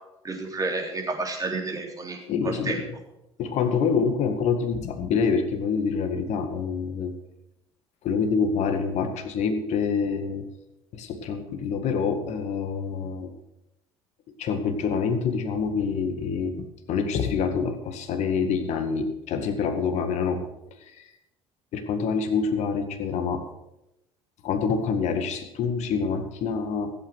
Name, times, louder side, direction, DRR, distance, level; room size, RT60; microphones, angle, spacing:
voice 1, 0.2-2.8, right 3 dB, 25° right, 1 dB, 3.6 m, -30 dB
voice 2, 2.3-2.8 3.4-7.2 8.0-10.5 10.9-13.3 14.4-20.5 21.0-21.1 21.7-23.5 24.4-26.9, left 5 dB, 55° left, 7 dB, 1.8 m, -26 dB
15.0 x 8.3 x 6.3 m, 0.91 s
hypercardioid pair, 65°, 14 cm